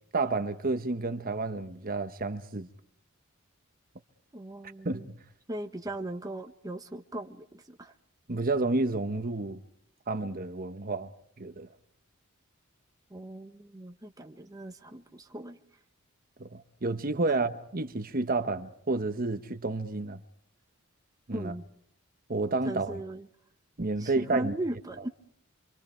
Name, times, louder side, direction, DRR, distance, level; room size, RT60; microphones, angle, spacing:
voice 1, 0.1-2.7 4.8-5.2 8.3-9.6 10.1-11.1 11.4-11.7 16.4-20.2 21.3-21.5 22.3-23.0 23.8-24.5, right 3 dB, 45° right, 1.1 m, -30 dB
voice 2, 4.3-5.1 5.5-7.9 13.1-15.6 17.2-17.4 21.3-21.6 22.6-23.3 24.0-25.1, right 1 dB, 15° right, 1.1 m, -38 dB
28.5 x 25.0 x 4.5 m
head